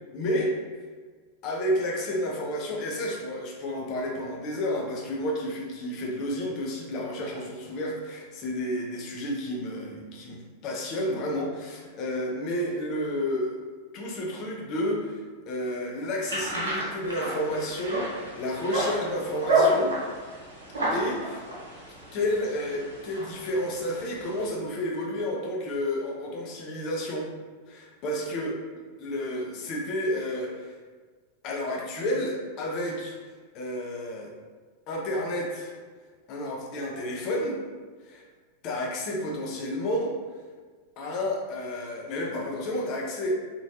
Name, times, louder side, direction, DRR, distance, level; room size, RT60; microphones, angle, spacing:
voice 1, 0.1-0.5 1.4-13.5 13.9-19.9 20.9-21.4 22.1-27.3 27.7-28.6 29.0-30.8 31.4-33.1 33.5-34.3 34.9-35.7 36.3-37.6 38.0-38.2 38.6-40.2 41.0-43.4, left 1 dB, 40° left, -2 dB, 0.7 m, -31 dB
sound 1, 16.3-24.5, right 1 dB, 70° right, 0.8 m, -30 dB
3.1 x 2.6 x 2.7 m, 1.5 s
figure-of-eight pair, 90°, 0 cm